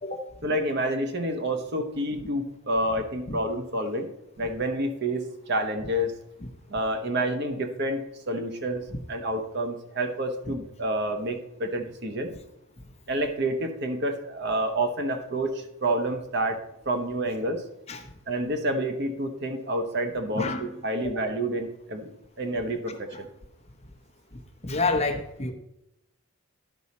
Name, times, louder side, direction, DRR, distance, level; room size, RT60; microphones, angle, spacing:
voice 1, 0.4-4.1 4.4-6.1 6.7-8.0 8.3-12.3 13.1-16.6 16.9-17.6 18.3-20.4 20.8-22.1 22.4-23.3, right 1 dB, 55° right, 6 dB, 0.9 m, -28 dB
voice 2, 20.3-20.7 21.0-21.1 22.9-23.2 24.6-25.5, left 3 dB, 30° left, 4 dB, 0.8 m, -29 dB
11.0 x 5.4 x 4.2 m, 0.87 s
head